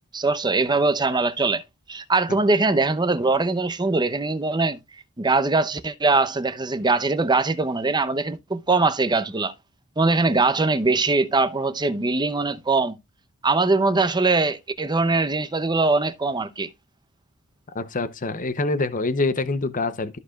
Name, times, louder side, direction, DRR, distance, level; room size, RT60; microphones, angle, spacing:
voice 1, 0.1-1.6 1.9-4.8 5.2-9.5 10.0-13.0 13.4-16.7, right 3 dB, 20° right, 0.7 m, -22 dB
voice 2, 17.7-20.2, left 3 dB, 35° left, 0.7 m, -25 dB
14.0 x 4.8 x 2.4 m
head